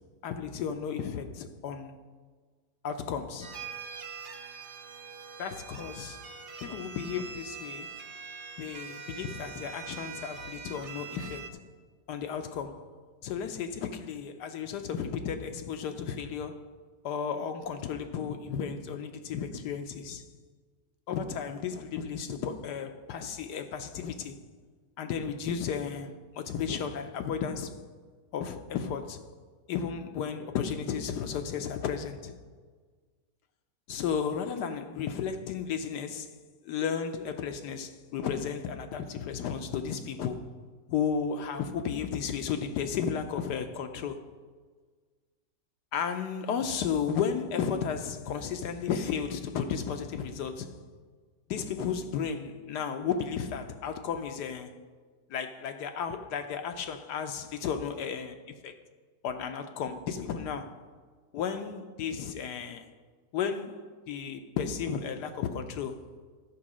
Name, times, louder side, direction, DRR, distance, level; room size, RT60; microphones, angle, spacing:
voice 1, 0.2-2.0 2.8-3.6 5.4-6.2 6.6-7.9 8.6-11.5 12.1-12.9 13.2-16.6 17.0-20.2 21.1-24.4 25.0-27.8 28.3-29.2 29.7-32.3 33.9-36.3 36.6-40.5 40.9-44.2 45.9-50.7 51.5-54.7 55.3-58.7 59.2-60.8 61.3-62.8 63.3-66.1, left 7 dB, 75° left, 1.2 m, -33 dB
sound 1, 3.4-11.5, right 6 dB, 60° right, 0.5 m, -43 dB
13.5 x 4.6 x 6.1 m
omnidirectional pair, 1.8 m